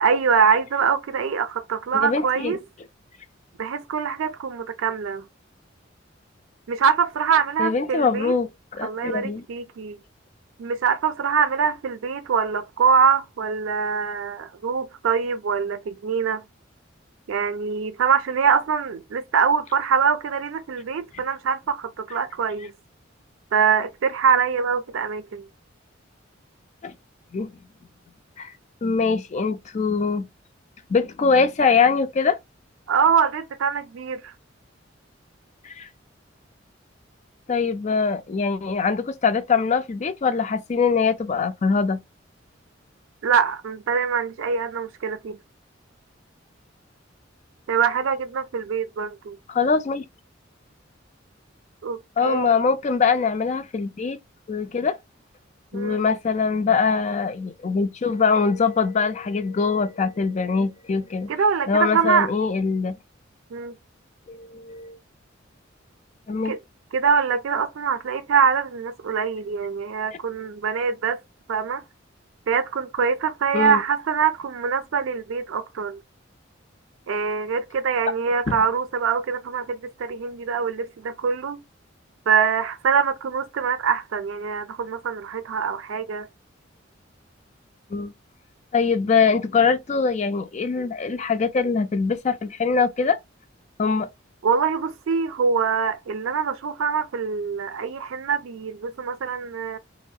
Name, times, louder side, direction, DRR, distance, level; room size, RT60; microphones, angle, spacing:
voice 1, 0.0-2.6 3.6-5.3 6.7-8.4 8.8-10.0 10.6-16.4 17.3-22.7 23.5-25.5 32.9-34.3 43.2-45.4 47.7-49.4 51.8-52.6 55.7-56.0 61.3-62.3 63.5-63.7 66.4-66.6 66.9-71.2 71.5-71.8 72.5-76.0 77.1-81.6 82.3-86.3 94.4-99.8, right 6 dB, 85° right, 0.4 m, -24 dB
voice 2, 1.9-2.6 7.6-9.4 26.8-26.9 27.3-27.5 28.4-28.5 28.8-30.2 30.9-32.4 35.6-35.9 37.5-42.0 49.5-50.0 52.2-54.2 54.5-55.0 55.7-61.3 61.7-63.0 64.3-65.0 66.3-66.5 73.5-73.8 78.5-78.6 87.9-88.1 88.7-93.2 93.8-94.1, left 5 dB, 35° left, 0.4 m, -23 dB
3.6 x 2.0 x 2.3 m
head